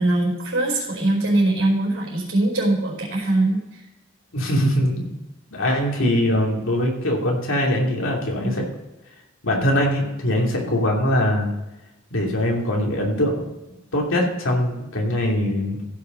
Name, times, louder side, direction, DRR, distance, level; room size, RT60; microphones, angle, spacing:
voice 1, 0.0-3.6, right 2 dB, 65° right, -3 dB, 4.2 m, -21 dB
voice 2, 4.3-5.1 5.5-8.6 9.4-11.5 12.1-13.4 13.9-15.8, left 1 dB, 70° left, -1 dB, 2.9 m, -22 dB
15.5 x 6.8 x 5.4 m, 1.0 s
head